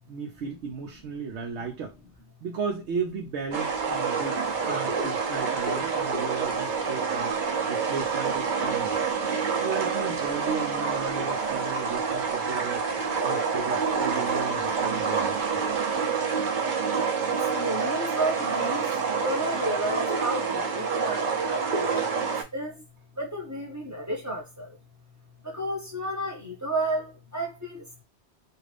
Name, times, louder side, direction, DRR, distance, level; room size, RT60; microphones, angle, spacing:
voice 1, 0.1-1.9 2.4-7.3 7.7-9.0 9.6-12.8 13.2-15.6, right 5 dB, 80° right, 0.9 m, -35 dB
sound 1, 3.5-22.4, right 5 dB, 55° right, 0.7 m, -27 dB
voice 2, 15.3-15.7 17.3-22.8 23.1-24.8 25.4-28.0, right 1 dB, 15° right, 0.9 m, -32 dB
2.5 x 2.5 x 3.2 m
omnidirectional pair, 1.1 m